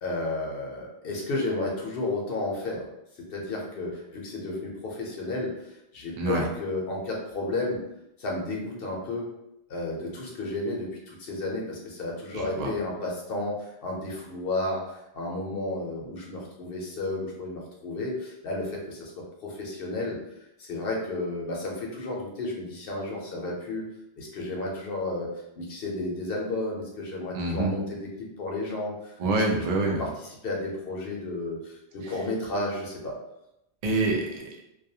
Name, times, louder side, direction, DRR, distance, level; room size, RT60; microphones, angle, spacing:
voice 1, 0.0-2.9 3.2-7.8 8.2-9.3 9.7-20.2 20.6-23.9 24.2-25.3 25.6-29.2 29.5-29.6 30.0-30.1 30.4-33.2, left 2 dB, 60° left, -1 dB, 0.9 m, -32 dB
voice 2, 12.3-12.7 27.3-27.7 29.2-30.1 32.0-32.1 33.8-34.5, right 2 dB, 50° right, 0 dB, 0.5 m, -26 dB
2.3 x 2.3 x 2.7 m, 0.84 s
omnidirectional pair, 1.1 m